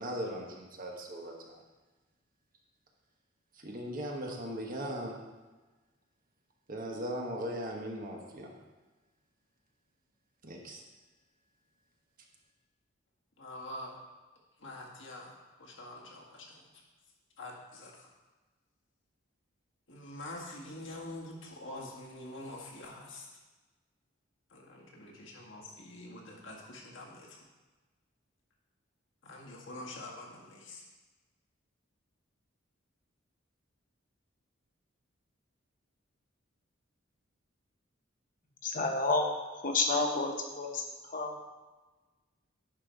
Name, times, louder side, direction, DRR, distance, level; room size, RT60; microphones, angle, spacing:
voice 1, 0.0-1.6 3.6-5.2 6.7-8.5 10.4-10.8, equal, 45° right, 0 dB, 1.3 m, -38 dB
voice 2, 13.4-14.0 14.6-15.3 15.6-16.6 17.4-18.1 19.9-23.3 24.5-27.4 29.2-30.8, left 1 dB, 65° left, -2 dB, 1.7 m, -45 dB
voice 3, 38.6-39.3 39.6-40.8 41.1-41.4, left 3 dB, 45° left, 2 dB, 1.0 m, -30 dB
10.5 x 4.4 x 5.2 m, 1.2 s
head